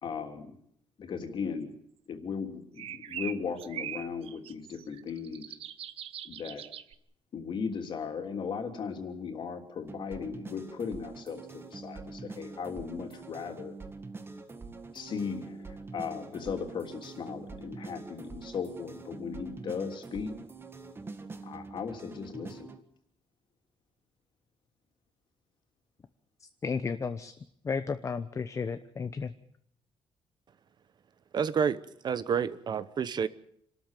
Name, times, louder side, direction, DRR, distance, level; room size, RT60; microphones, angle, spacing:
voice 1, 0.0-0.6 1.0-1.7 2.1-5.6 6.2-6.6 7.3-13.7 14.9-20.3 21.4-22.7, left 6 dB, 50° left, 3.3 m, -37 dB
sound 1, 2.8-6.9, right 10 dB, 65° right, 1.1 m, -41 dB
sound 2, 9.9-22.8, right 3 dB, 20° right, 1.8 m, -45 dB
voice 2, 26.4-27.4 27.6-29.3, left 5 dB, 30° left, 0.9 m, -33 dB
voice 3, 31.3-31.8 32.0-33.3, right 7 dB, 45° right, 1.0 m, -28 dB
27.0 x 13.0 x 9.1 m
cardioid pair, 145°, 11 cm